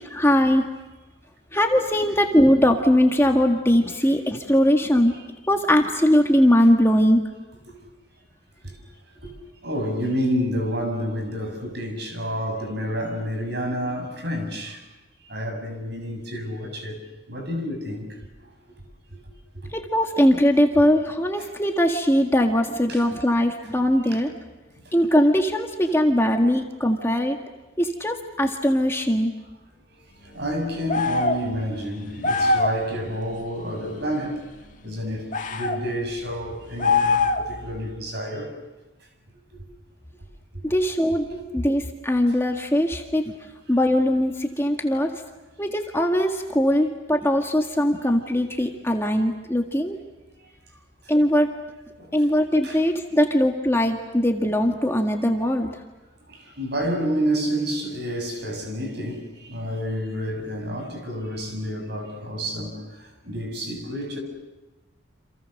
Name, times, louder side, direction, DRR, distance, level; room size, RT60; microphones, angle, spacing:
voice 1, 0.1-0.7 1.5-5.1 5.5-7.2 19.7-24.3 24.9-27.4 27.8-29.3 40.6-41.3 41.5-43.3 43.7-45.1 45.6-50.0 51.1-51.6 52.1-55.7, equal, 10° left, 1.8 m, -20 dB
voice 2, 9.6-14.8 15.2-17.0 17.3-18.5 19.1-19.2 19.6-19.7 21.4-21.5 22.9-23.0 24.1-24.2 24.7-25.0 30.2-34.4 34.8-38.5 41.3-41.4 52.0-52.1 52.6-52.8 56.3-64.2, equal, 55° right, 7.1 m, -29 dB
sound 1, 30.9-31.4 32.2-32.8 35.3-35.8 36.8-37.6, left 3 dB, 40° left, 1.8 m, -22 dB
29.5 x 28.0 x 6.6 m
head